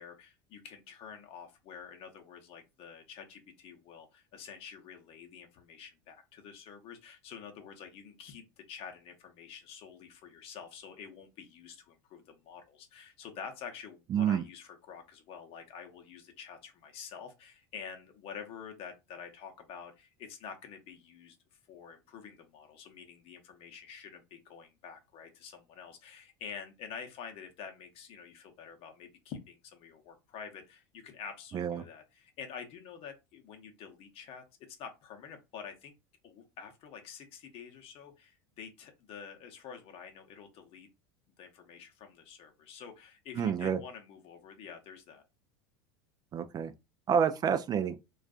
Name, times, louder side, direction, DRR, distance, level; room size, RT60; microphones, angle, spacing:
voice 1, 0.0-35.9 36.2-40.9 41.4-45.2, left 7 dB, 50° left, 0.8 m, -48 dB
voice 2, 14.1-14.4 31.5-31.8 43.4-43.8 46.3-46.7 47.1-48.0, right 8 dB, 30° right, 0.4 m, -28 dB
2.4 x 2.3 x 2.4 m
hypercardioid pair, 85°, 13 cm